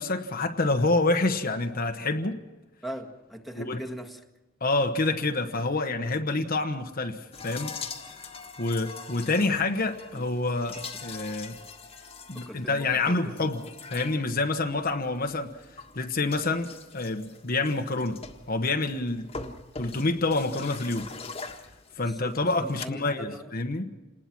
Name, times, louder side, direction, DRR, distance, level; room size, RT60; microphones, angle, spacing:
voice 1, 0.0-2.4 3.6-3.8 4.6-7.7 8.6-11.6 12.3-13.6 13.9-18.2 18.5-19.3 19.8-21.1 22.0-23.8, left 2 dB, 45° left, 5 dB, 1.2 m, -27 dB
voice 2, 2.8-4.2 9.2-9.5 10.1-10.3 12.3-13.5 19.3-19.6 22.0-23.6, equal, ahead, 1 dB, 1.7 m, -41 dB
sound 1, 7.3-22.9, left 4 dB, 30° left, 1.7 m, -43 dB
28.0 x 20.0 x 6.1 m, 1.2 s
head